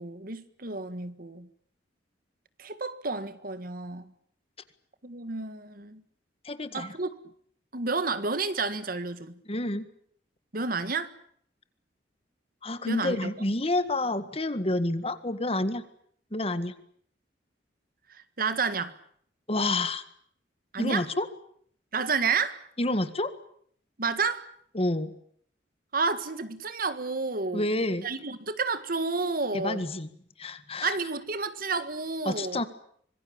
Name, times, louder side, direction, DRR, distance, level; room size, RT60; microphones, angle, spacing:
voice 1, 0.0-1.5 2.6-4.1 5.0-6.0 6.7-7.1 7.7-9.4 10.5-11.1 12.9-13.3 18.1-19.0 20.7-21.1 21.9-22.6 24.0-24.5 25.9-27.7 28.0-29.8 30.8-32.6, right 4 dB, 50° right, 1.7 m, -30 dB
voice 2, 6.4-7.0 9.5-9.9 12.6-15.8 16.3-16.7 19.5-20.0 20.8-21.3 22.8-23.3 24.7-25.1 27.5-28.1 29.5-30.1 30.4-31.0 32.3-32.7, left 2 dB, 35° left, 1.8 m, -28 dB
25.5 x 21.0 x 8.8 m
head